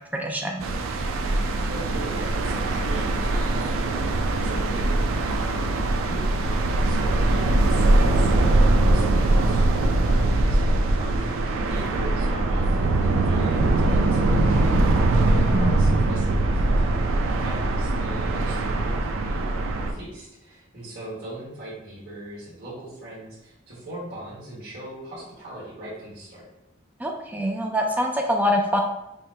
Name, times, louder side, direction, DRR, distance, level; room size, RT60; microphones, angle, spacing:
voice 1, 0.1-0.7 15.4-15.7 27.0-28.8, equal, 10° right, 1 dB, 0.4 m, -25 dB
sound 1, 0.6-19.9, right 2 dB, 80° right, 0.4 m, -22 dB
voice 2, 1.7-8.5 8.8-26.4, right 1 dB, 50° right, -10 dB, 1.2 m, -40 dB
4.6 x 2.1 x 3.2 m, 0.86 s
head